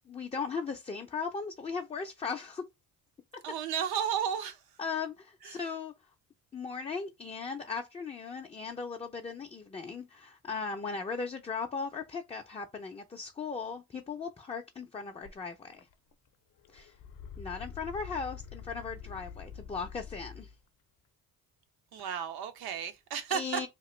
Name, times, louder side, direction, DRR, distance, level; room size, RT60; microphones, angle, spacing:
voice 1, 0.1-2.6 4.8-5.9 6.5-15.9 16.7-16.9 17.4-20.5 22.0-22.2 23.3-23.7, left 5 dB, 20° left, 0.3 m, -37 dB
voice 2, 3.4-4.6 5.4-5.6 21.9-23.6, right 8 dB, 85° right, 0.8 m, -33 dB
sound 1, 15.2-15.3 15.7-16.3 16.6-20.5, left 7 dB, 65° left, 0.5 m, -46 dB
2.9 x 2.4 x 3.0 m
cardioid pair, 100°, 36 cm